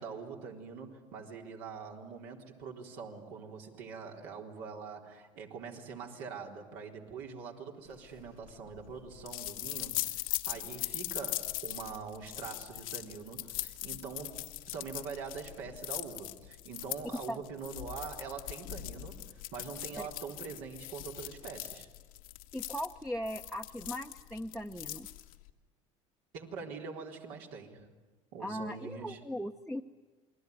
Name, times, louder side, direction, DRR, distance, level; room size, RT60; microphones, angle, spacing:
voice 1, 0.0-14.4 14.7-21.9 26.3-27.9 28.3-29.2, right 5 dB, 75° right, 1 dB, 4.0 m, -44 dB
sound 1, 8.0-25.5, left 16 dB, 90° left, 1.5 m, -40 dB
voice 2, 22.5-25.1 28.4-29.8, equal, ahead, 3 dB, 0.9 m, -38 dB
28.5 x 21.5 x 9.6 m, 1.3 s
supercardioid pair, 90°, 17 cm